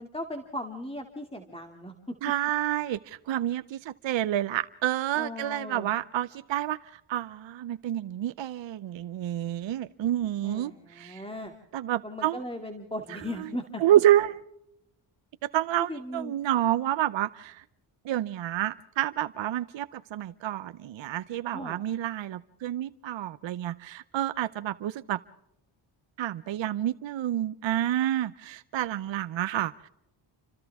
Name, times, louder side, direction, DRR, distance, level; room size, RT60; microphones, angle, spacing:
voice 1, 0.0-1.9 5.2-5.9 10.4-11.5 12.0-13.8 15.9-16.4 21.5-21.8, left 1 dB, 10° left, 4 dB, 2.5 m, -37 dB
voice 2, 2.2-11.2 11.7-12.4 13.4-13.5 13.8-14.4 15.4-17.6 18.0-25.2 26.2-29.9, right 12 dB, 65° right, 12 dB, 0.7 m, -29 dB
29.5 x 25.5 x 3.6 m, 0.82 s
cardioid pair, 70°, 48 cm